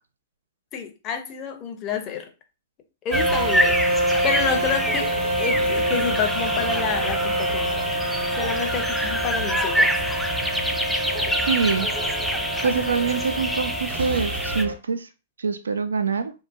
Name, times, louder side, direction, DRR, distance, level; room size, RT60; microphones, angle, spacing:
voice 1, 0.7-2.3 3.0-3.9 4.2-5.1 5.4-7.9 8.4-9.9, left 6 dB, 35° left, 0.7 m, -29 dB
sound 1, 3.1-14.6, equal, ahead, 0.4 m, -27 dB
sound 2, 3.1-14.7, right 2 dB, 65° right, 0.7 m, -27 dB
Wind instrument woodwind instrument, 3.7-13.9, left 2 dB, 85° left, 0.6 m, -35 dB
voice 2, 11.5-11.9 12.6-15.1 15.4-16.3, right 5 dB, 80° right, 0.3 m, -25 dB
2.8 x 2.2 x 2.5 m
hypercardioid pair, 105°, 0 cm